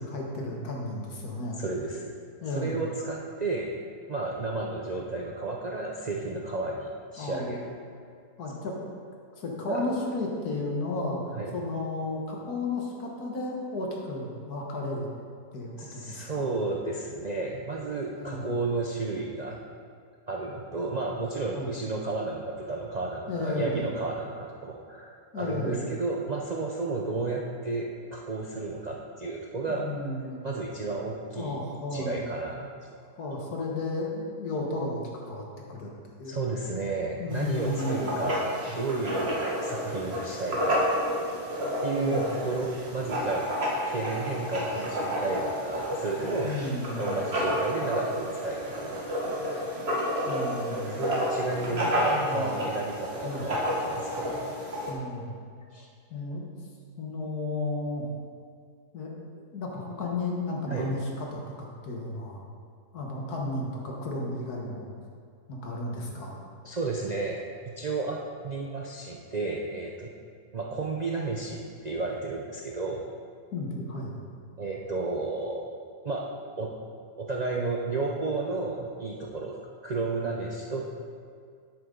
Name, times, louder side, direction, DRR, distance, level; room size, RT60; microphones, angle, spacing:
voice 1, 0.0-1.6 2.4-2.8 7.2-7.6 8.4-8.8 9.4-11.2 11.5-15.1 15.5-16.5 18.1-18.5 21.5-21.7 23.3-24.0 25.3-25.9 29.7-30.5 31.4-32.2 33.2-35.9 36.2-36.4 37.2-38.1 41.9-42.4 46.4-47.3 50.3-51.0 51.7-52.7 53.2-53.6 54.9-55.3 56.1-56.5 57.0-58.1 58.9-59.1 59.5-62.4 62.9-64.9 65.5-66.3 73.5-74.2, left 2 dB, 70° left, -1 dB, 1.8 m, -33 dB
voice 2, 1.6-2.1 2.5-3.7 4.1-7.7 9.7-9.9 11.3-11.6 15.8-19.6 20.3-29.9 30.2-31.6 31.9-32.7 36.2-38.4 38.7-40.9 41.8-43.5 43.9-46.6 46.9-49.5 51.0-54.5 55.7-55.9 60.7-60.9 66.6-67.4 67.8-70.1 70.5-73.0 74.6-75.7 76.0-76.3 76.6-76.7 77.2-80.9, right 3 dB, 85° right, -2 dB, 0.3 m, -32 dB
Writing, 37.3-54.9, equal, 40° right, 1.8 m, -30 dB
10.0 x 8.4 x 3.8 m, 2.2 s
omnidirectional pair, 1.7 m